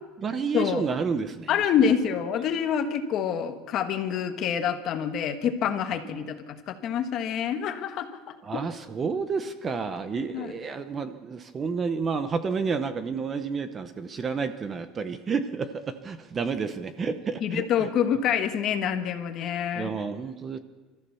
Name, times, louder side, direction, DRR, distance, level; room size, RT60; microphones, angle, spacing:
voice 1, 0.0-1.6 2.7-2.8 6.1-6.2 8.4-17.9 19.7-20.6, right 5 dB, 20° right, 11 dB, 0.9 m, -30 dB
voice 2, 1.5-8.1 8.5-8.6 10.1-10.5 17.4-19.9, left 8 dB, 35° left, 8 dB, 1.5 m, -27 dB
26.0 x 14.5 x 7.0 m, 1.3 s
cardioid pair, 170°, 0 cm